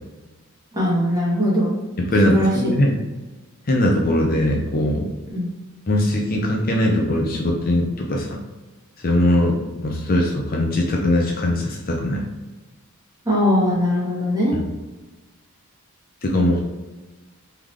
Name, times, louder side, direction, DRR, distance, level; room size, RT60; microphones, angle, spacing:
voice 1, 0.7-1.7 2.2-2.7 5.3-5.5 13.2-14.6, left 1 dB, 15° right, -6 dB, 1.4 m, -20 dB
voice 2, 2.0-3.0 3.7-5.1 5.9-8.3 9.0-12.3 16.2-16.6, left 1 dB, 40° left, -1 dB, 0.6 m, -20 dB
3.7 x 3.4 x 3.1 m, 1.2 s
head